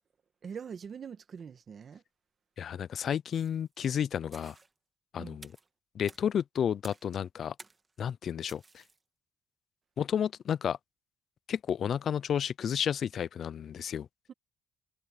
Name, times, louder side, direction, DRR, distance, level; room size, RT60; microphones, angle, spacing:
voice 1, 0.4-2.0 5.2-5.4 14.3-14.4, right 7 dB, 50° right, 1.7 m, -43 dB
voice 2, 2.6-4.6 5.1-5.5 5.9-7.6 8.0-8.8 10.0-10.8 11.5-14.1, left 8 dB, 60° left, 0.4 m, -31 dB
sound 1, 3.3-3.7 4.3-4.7 5.4-5.7 6.1-6.2 6.8-7.1 7.6-7.9 8.5-9.0, right 3 dB, 25° right, 1.7 m, -52 dB
cardioid pair, 90°, 0 cm